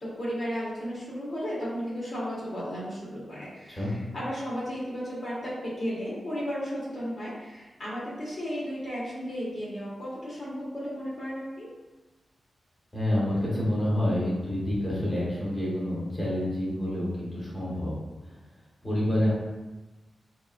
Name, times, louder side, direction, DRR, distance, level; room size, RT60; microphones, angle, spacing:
voice 1, 0.0-11.7, equal, 45° left, -7 dB, 1.3 m, -34 dB
voice 2, 12.9-17.9 18.8-19.3, left 1 dB, 5° left, -8 dB, 1.2 m, -28 dB
4.6 x 3.0 x 2.5 m, 1.1 s
wide cardioid pair, 160°, 0 cm